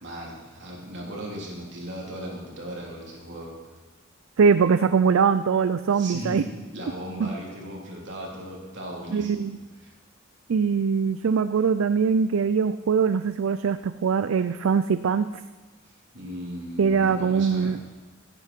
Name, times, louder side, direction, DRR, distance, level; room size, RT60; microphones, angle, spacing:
voice 1, 0.0-3.5 5.9-9.5 9.8-9.9 15.8-17.8, equal, 60° right, -2 dB, 3.5 m, -37 dB
voice 2, 4.4-6.4 7.2-7.3 9.1-9.6 10.5-15.3 16.8-17.8, right 6 dB, 80° right, 12 dB, 0.4 m, -22 dB
15.5 x 10.5 x 4.5 m, 1.4 s
head